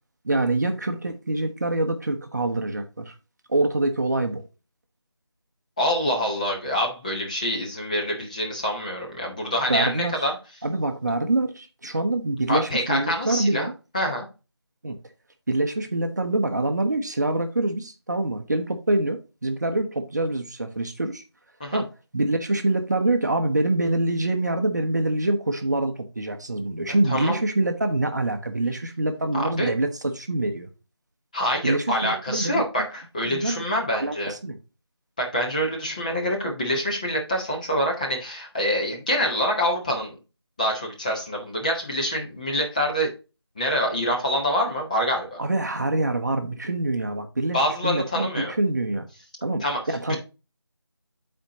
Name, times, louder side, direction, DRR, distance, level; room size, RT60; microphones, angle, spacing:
voice 1, 0.2-3.1 3.5-4.4 9.7-10.1 10.6-13.7 14.8-15.0 15.5-21.2 21.7-30.7 31.6-32.6 33.2-33.6 33.9-34.6 45.4-49.1 49.4-50.2, right 2 dB, 40° right, 0.8 m, -25 dB
voice 2, 5.8-10.4 12.5-13.7 13.9-14.3 21.6-21.8 27.1-27.4 29.3-29.7 31.3-34.3 35.2-40.2 40.6-43.1 43.6-45.4 47.5-48.5 49.6-49.8 50.1-50.2, equal, 15° left, 0.9 m, -26 dB
11.0 x 4.3 x 2.7 m
figure-of-eight pair, 170°, 14 cm